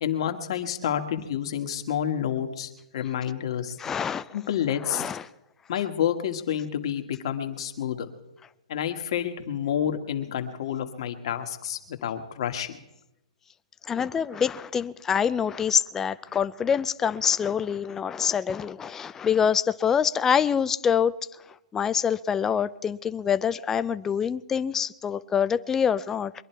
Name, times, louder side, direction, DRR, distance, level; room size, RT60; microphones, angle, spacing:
voice 1, 0.0-3.8 4.3-5.1 5.7-8.1 8.7-12.8, left 9 dB, 55° left, 6 dB, 1.8 m, -29 dB
voice 2, 3.8-4.3 4.9-5.2 13.9-21.1 21.7-26.4, left 7 dB, 10° left, 14 dB, 0.4 m, -25 dB
23.0 x 11.0 x 4.6 m, 0.93 s
hypercardioid pair, 145°, 3 cm